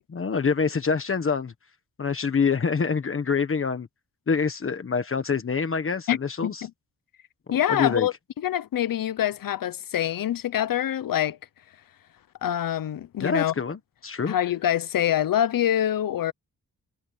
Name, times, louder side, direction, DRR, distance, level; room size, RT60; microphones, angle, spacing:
voice 1, 0.1-1.5 2.0-3.9 4.3-6.7 7.7-8.1 13.2-14.4, left 5 dB, 35° left, 1.4 m, -26 dB
voice 2, 6.1-6.7 7.5-11.4 12.4-13.5 14.3-16.3, left 11 dB, 65° left, 0.8 m, -25 dB
wide cardioid pair, 165°, 37 cm